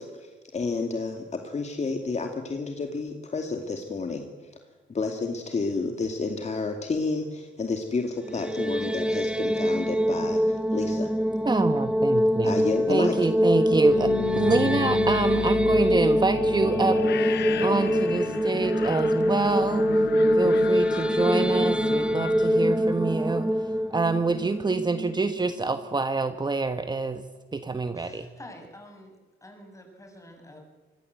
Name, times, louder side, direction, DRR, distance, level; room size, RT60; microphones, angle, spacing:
voice 1, 0.0-4.5 4.9-11.1 12.4-13.2, left 4 dB, 35° left, 4 dB, 2.4 m, -30 dB
sound 1, 8.2-25.4, equal, 5° right, 0.9 m, -24 dB
voice 2, 11.4-12.5 12.9-17.3 17.6-19.9 20.3-23.5 23.9-27.2 27.5-28.3, right 3 dB, 20° right, 9 dB, 1.3 m, -26 dB
sound 2, 13.7-23.6, left 11 dB, 60° left, 0.8 m, -34 dB
voice 3, 27.9-29.1 29.4-30.6, left 1 dB, 15° left, 3 dB, 7.4 m, -47 dB
25.0 x 20.5 x 8.1 m, 1.3 s
cardioid pair, 90°, 20 cm